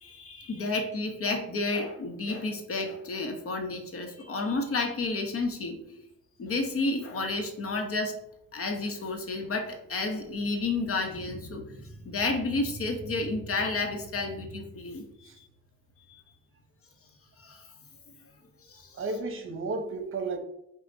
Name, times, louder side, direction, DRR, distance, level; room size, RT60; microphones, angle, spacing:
voice 1, 0.0-6.0 6.4-8.1 8.5-15.5 16.1-16.2 17.4-17.7 18.7-19.0, left 3 dB, 50° left, 1.0 m, -31 dB
voice 2, 19.0-20.4, right 3 dB, 45° right, 1.0 m, -33 dB
5.2 x 2.3 x 3.9 m
cardioid pair, 90°, 30 cm